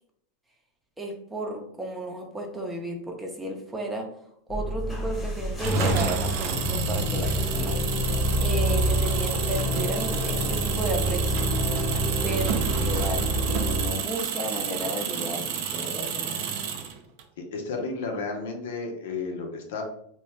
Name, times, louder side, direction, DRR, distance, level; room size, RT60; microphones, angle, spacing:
voice 1, 1.0-4.1 4.5-7.8 8.4-11.5 12.2-16.4, right 1 dB, 15° right, 2 dB, 0.7 m, -33 dB
sound 1, 4.5-13.9, equal, 15° left, 1.0 m, -27 dB
Engine, 5.6-17.2, right 8 dB, 60° right, 0.4 m, -31 dB
voice 2, 17.4-19.8, left 4 dB, 75° left, 3 dB, 0.6 m, -32 dB
2.7 x 2.2 x 3.2 m, 0.70 s
hypercardioid pair, 110°, 0 cm